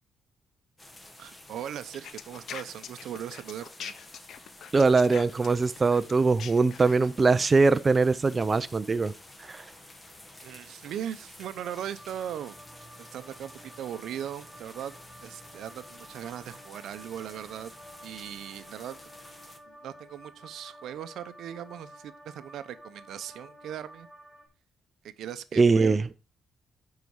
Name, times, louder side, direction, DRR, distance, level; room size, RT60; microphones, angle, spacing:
sound 1, 0.8-19.6, left 1 dB, 20° left, 1.4 m, -51 dB
voice 1, 1.2-3.9 10.4-12.6 13.0-14.9 15.2-17.7 18.0-19.0 19.7-24.1 25.2-26.1, right 10 dB, 75° right, 0.6 m, -39 dB
sound 2, 2.0-7.1, left 8 dB, 65° left, 0.7 m, -42 dB
voice 2, 4.7-9.6 25.6-26.0, right 4 dB, 30° right, 0.4 m, -22 dB
sound 3, 11.6-24.5, equal, 10° right, 4.6 m, -52 dB
9.5 x 4.8 x 4.6 m
cardioid pair, 90°, 0 cm